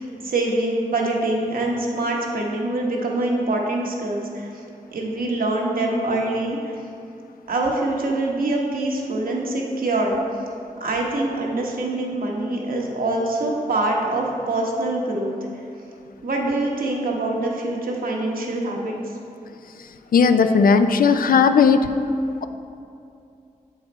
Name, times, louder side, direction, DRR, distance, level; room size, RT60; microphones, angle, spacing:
voice 1, 0.0-4.5 4.9-6.7 7.5-10.2 10.8-15.3 16.2-19.0, right 2 dB, 75° right, -1 dB, 1.1 m, -24 dB
voice 2, 20.1-21.9, left 5 dB, 75° left, 9 dB, 0.4 m, -16 dB
7.4 x 4.7 x 4.3 m, 2.5 s
cardioid pair, 50°, 15 cm